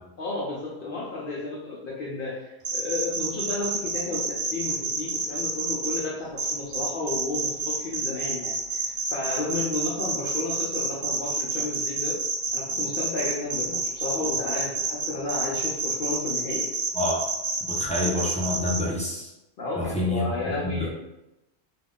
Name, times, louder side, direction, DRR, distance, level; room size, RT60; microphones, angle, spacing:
voice 1, 0.2-12.2 12.5-16.7 19.6-20.9, left 3 dB, 60° left, -5 dB, 0.7 m, -32 dB
sound 1, 2.6-6.0 6.4-18.8, right 3 dB, 55° right, 0.4 m, -28 dB
voice 2, 17.7-19.3 19.7-20.9, left 1 dB, 10° left, -5 dB, 0.4 m, -28 dB
2.4 x 2.3 x 3.5 m, 0.93 s
omnidirectional pair, 1.1 m